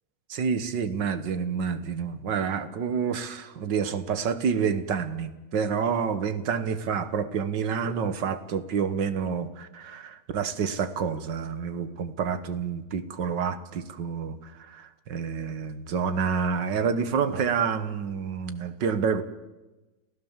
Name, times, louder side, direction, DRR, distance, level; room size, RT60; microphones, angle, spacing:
voice 1, 0.3-19.2, right 6 dB, 80° right, 12 dB, 1.9 m, -28 dB
29.0 x 15.5 x 7.4 m, 1.1 s
omnidirectional pair, 1.9 m